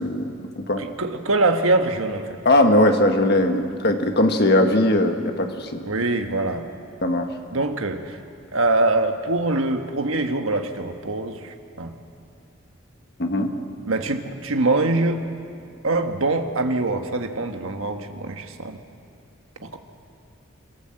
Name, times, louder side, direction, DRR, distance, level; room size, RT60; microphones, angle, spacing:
voice 1, 0.0-0.8 2.4-5.9 7.0-7.3 13.2-13.5, left 1 dB, 50° left, 5 dB, 1.6 m, -20 dB
voice 2, 0.8-2.4 5.9-6.7 7.5-8.2 8.5-11.9 13.8-15.3 15.8-18.8 19.6-19.8, right 2 dB, 75° right, 6 dB, 1.4 m, -23 dB
27.0 x 14.5 x 7.8 m, 2.4 s
head